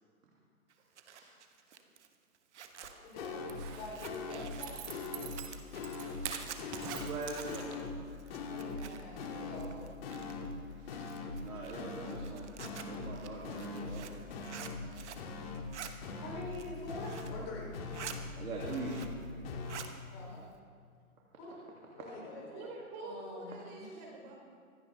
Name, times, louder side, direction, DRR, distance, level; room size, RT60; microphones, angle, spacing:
Zipper (clothing), 0.7-9.3 9.5-10.5 11.0-15.3 15.5-15.9 16.4-17.4 17.7-18.2 18.5-19.3 19.5-19.9, right 8 dB, 50° right, 1.2 m, -49 dB
sound 1, 2.8-2.9 3.2-3.7 4.0-4.6 4.9-5.4 5.7-6.3 6.6-7.2 7.4-8.0 8.3-8.9 9.2-9.7 10.0-10.6 10.9-11.4 11.7-12.3 12.6-13.2 13.4-14.0 14.3-14.9 15.2-15.7 16.0-16.6 16.9-17.4 17.7-18.3 18.6-19.2 19.4-19.8, left 4 dB, 40° left, 2.0 m, -41 dB
voice 1, 3.0-4.8 8.5-9.9 16.2-17.7 20.1-20.4 21.4-21.6 21.9-22.7 23.0-24.0, left 2 dB, 25° left, -2 dB, 3.8 m, -46 dB
Zipper (clothing) 2, 3.4-8.0 8.3-8.4, right 8 dB, 15° right, 0.7 m, -45 dB
voice 2, 7.0-7.7 10.8-10.9 11.4-12.5 12.8-14.2 14.7-15.0 18.4-18.9, right 3 dB, 70° right, -4 dB, 2.9 m, -42 dB
voice 3, 22.5-24.3, right 3 dB, 30° right, -1 dB, 3.9 m, -46 dB
25.5 x 9.8 x 3.6 m, 2.1 s
figure-of-eight pair, 135°, 44 cm